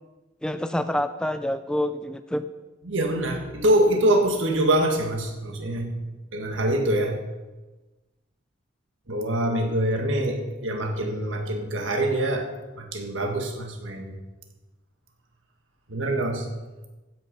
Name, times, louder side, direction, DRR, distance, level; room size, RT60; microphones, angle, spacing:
voice 1, 0.4-2.5, left 1 dB, 5° left, 10 dB, 0.4 m, -27 dB
voice 2, 2.8-5.9 6.3-7.2 9.1-14.1 15.9-16.5, right 1 dB, 75° right, 3 dB, 1.8 m, -24 dB
15.0 x 6.4 x 5.5 m, 1.2 s
head